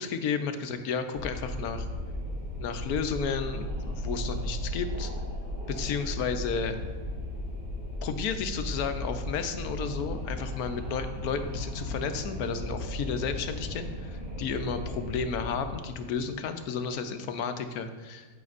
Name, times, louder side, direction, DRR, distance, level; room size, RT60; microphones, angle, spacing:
voice 1, 0.0-1.9 2.6-5.1 5.7-6.8 8.0-18.3, left 6 dB, 80° left, 8 dB, 1.1 m, -32 dB
Wind, 1.1-16.5, left 1 dB, 35° right, 2.3 m, -36 dB
9.3 x 8.5 x 2.5 m, 1.4 s
omnidirectional pair, 1.5 m